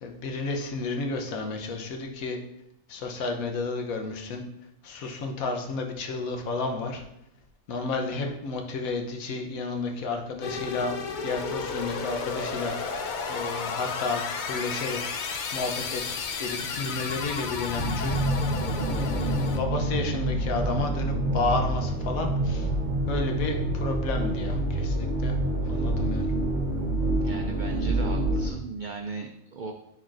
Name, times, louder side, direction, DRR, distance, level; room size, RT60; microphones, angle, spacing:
voice 1, 0.0-2.4 2.9-4.4 4.8-7.0 7.7-10.9 11.2-15.0 15.5-16.0 16.4-18.2 18.5-18.6 19.0-22.7 23.1-25.4 25.7-26.3, left 3 dB, 85° left, 3 dB, 1.3 m, -31 dB
sound 1, 10.4-19.6, left 5 dB, 70° left, 0.4 m, -32 dB
sound 2, 17.8-28.5, right 1 dB, 40° right, 0.8 m, -27 dB
voice 2, 27.2-29.7, right 4 dB, 80° right, 3 dB, 0.4 m, -37 dB
10.0 x 4.2 x 2.5 m, 0.80 s
omnidirectional pair, 1.4 m